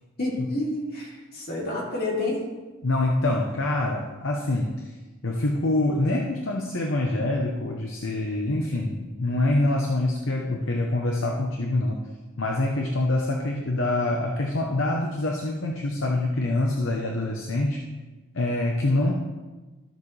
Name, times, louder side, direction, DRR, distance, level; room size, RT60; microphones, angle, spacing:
voice 1, 0.2-2.4, left 2 dB, 50° left, -3 dB, 2.6 m, -29 dB
voice 2, 2.8-5.0 5.2-12.0 12.4-17.8 18.3-19.1, left 2 dB, 65° left, 1 dB, 0.8 m, -25 dB
13.5 x 7.3 x 3.3 m, 1.2 s
head